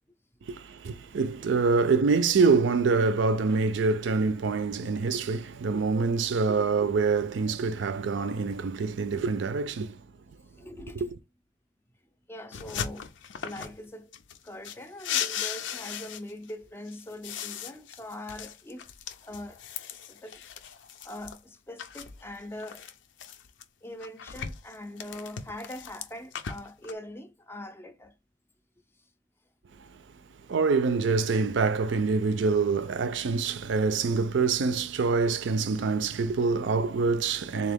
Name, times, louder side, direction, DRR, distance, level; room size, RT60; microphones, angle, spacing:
voice 1, 0.5-10.0 10.9-11.1 29.9-30.0 30.5-37.7, right 4 dB, 70° right, 0.4 m, -25 dB
voice 2, 10.6-11.0 12.3-13.1 13.4-14.1 14.4-18.8 19.2-19.6 20.1-20.4 21.0-22.8 23.8-28.1 37.1-37.2, left 1 dB, 10° left, 0.4 m, -42 dB
sound 1, 12.5-13.8 14.1-16.5 16.9-21.4 21.8-23.6 24.0-26.9, left 8 dB, 75° left, 0.5 m, -37 dB
3.7 x 2.8 x 3.4 m
head